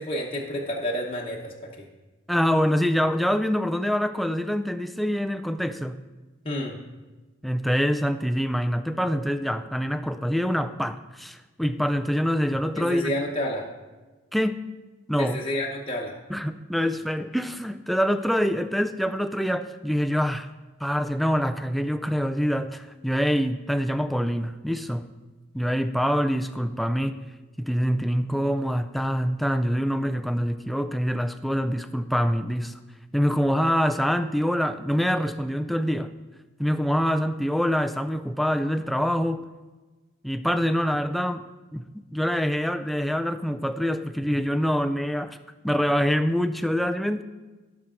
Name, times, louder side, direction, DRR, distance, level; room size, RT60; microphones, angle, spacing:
voice 1, 0.0-1.8 6.4-6.8 12.8-13.7 15.2-16.1, left 1 dB, 25° left, -2 dB, 0.9 m, -30 dB
voice 2, 2.3-6.0 7.4-13.1 14.3-14.6 15.1-15.4 16.3-20.5 20.8-25.1 25.5-27.2 27.6-32.8 33.1-36.1 36.6-39.5 40.2-45.4 45.6-47.2, equal, ahead, 9 dB, 0.3 m, -25 dB
17.5 x 6.0 x 3.8 m, 1.2 s
head